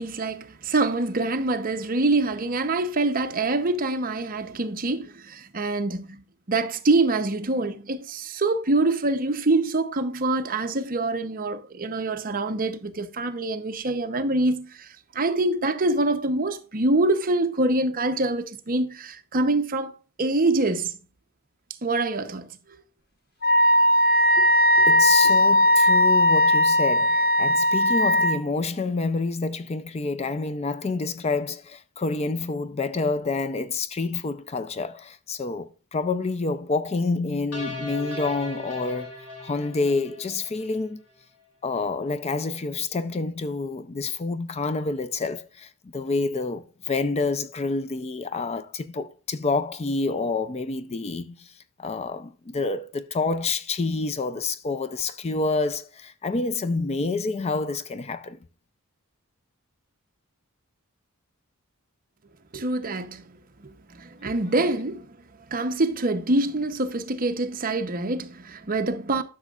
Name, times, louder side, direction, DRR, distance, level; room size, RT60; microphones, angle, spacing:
voice 1, 0.0-6.2 6.5-19.9 20.2-21.0 21.8-22.5 24.4-24.5 24.8-24.9 62.5-65.2 65.5-69.2, right 2 dB, 40° right, 0.8 m, -25 dB
Wind instrument woodwind instrument, 23.4-28.4, left 1 dB, 45° left, 1.0 m, -18 dB
voice 2, 24.9-39.1 39.4-41.0 41.6-51.5 51.8-58.4, left 3 dB, 30° left, 0.4 m, -28 dB
sound 1, 37.5-40.8, left 3 dB, 80° left, 2.6 m, -37 dB
12.0 x 6.2 x 2.4 m
head